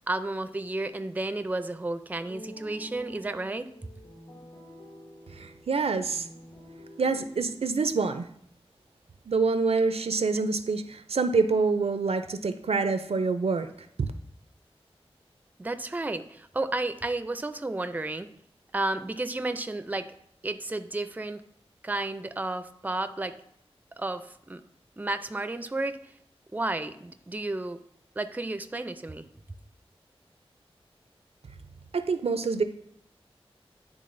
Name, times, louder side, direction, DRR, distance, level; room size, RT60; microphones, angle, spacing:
voice 1, 0.1-3.7 15.6-18.3 18.7-20.1 20.4-21.4 21.8-23.3 24.0-24.6 25.0-26.0 26.5-27.8 28.2-29.3, right 2 dB, 15° right, 10 dB, 0.4 m, -32 dB
sound 1, 2.2-8.3, equal, 70° left, 1.9 m, -48 dB
voice 2, 5.3-6.3 7.0-8.3 9.3-13.7 14.0-14.1 31.9-32.6, right 4 dB, 75° right, 9 dB, 0.4 m, -26 dB
10.0 x 3.6 x 2.6 m, 0.68 s
wide cardioid pair, 55°, 10 cm